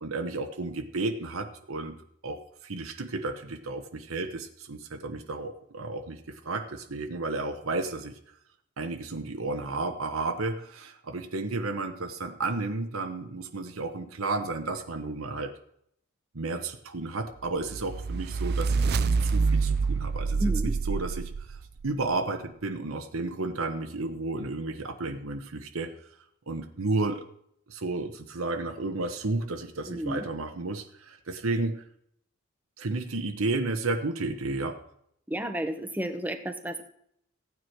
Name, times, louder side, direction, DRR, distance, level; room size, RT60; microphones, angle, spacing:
voice 1, 0.0-1.9 2.2-8.1 8.8-15.5 16.3-21.6 21.8-25.9 26.5-27.2 27.7-31.8 32.8-34.8, right 3 dB, 75° right, 6 dB, 1.1 m, -32 dB
sound 1, 17.7-21.9, right 4 dB, 50° right, 0.5 m, -27 dB
voice 2, 20.4-20.7 29.9-30.3 35.3-36.8, right 1 dB, 10° right, 7 dB, 1.1 m, -32 dB
16.0 x 9.4 x 4.6 m, 0.71 s
head